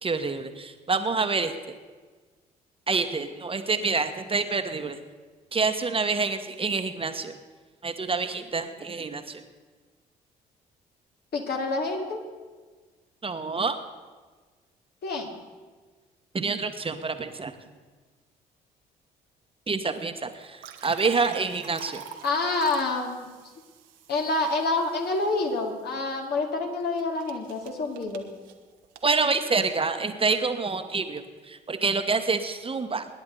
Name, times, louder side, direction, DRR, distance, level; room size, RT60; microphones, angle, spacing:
voice 1, 0.0-1.7 2.9-5.0 5.5-7.3 7.8-9.4 13.2-13.8 16.3-17.5 19.7-22.0 29.0-33.1, right 4 dB, 25° right, 7 dB, 1.4 m, -27 dB
voice 2, 11.3-12.2 15.0-15.3 22.2-23.3 24.1-28.3, left 3 dB, 50° left, 1 dB, 2.5 m, -27 dB
sound 1, 20.4-25.5 27.0-29.1, right 9 dB, 70° right, 1.3 m, -43 dB
26.0 x 10.5 x 4.0 m, 1.4 s
figure-of-eight pair, 50°, 20 cm